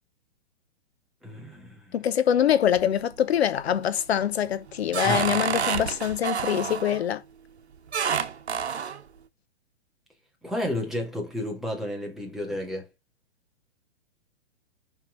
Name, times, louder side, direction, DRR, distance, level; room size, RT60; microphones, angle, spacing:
voice 1, 1.2-2.0 5.0-5.4 10.4-12.9, left 1 dB, ahead, 2.0 m, -32 dB
voice 2, 1.9-7.2, left 9 dB, 70° left, 0.9 m, -24 dB
sound 1, 2.5-3.1 3.6-4.0 4.4-7.0 7.9-9.0, right 7 dB, 85° right, 1.0 m, -29 dB
5.9 x 4.6 x 4.5 m
hypercardioid pair, 135°, 32 cm